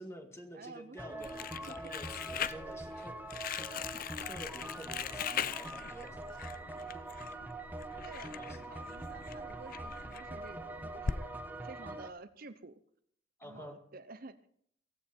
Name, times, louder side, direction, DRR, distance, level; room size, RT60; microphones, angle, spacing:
voice 1, 0.0-3.2 3.5-6.4 8.3-8.6 13.4-13.8, equal, 15° left, 5 dB, 2.0 m, -49 dB
voice 2, 0.5-1.8 8.0-11.3 11.6-12.8 13.4-14.4, right 3 dB, 50° right, 11 dB, 0.8 m, -51 dB
sound 1, 1.0-12.1, right 2 dB, 10° right, 1.1 m, -44 dB
Crumpling crinkling, 1.2-11.2, left 7 dB, 50° left, 0.5 m, -41 dB
16.5 x 15.5 x 4.5 m, 0.65 s
head